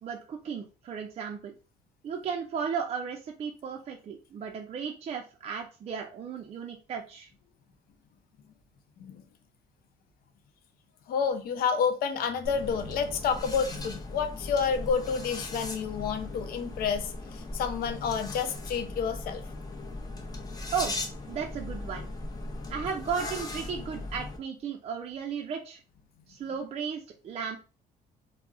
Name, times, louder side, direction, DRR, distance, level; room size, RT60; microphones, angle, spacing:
voice 1, 0.0-1.5 2.0-7.3 20.7-21.0 21.3-22.1 22.7-25.8 26.3-27.6, right 6 dB, 40° right, 0.4 m, -35 dB
voice 2, 11.1-19.4, left 6 dB, 60° left, 0.6 m, -29 dB
sound 1, 12.4-24.4, left 2 dB, 20° left, 0.7 m, -38 dB
2.3 x 2.0 x 3.6 m
cardioid pair, 110°, 17 cm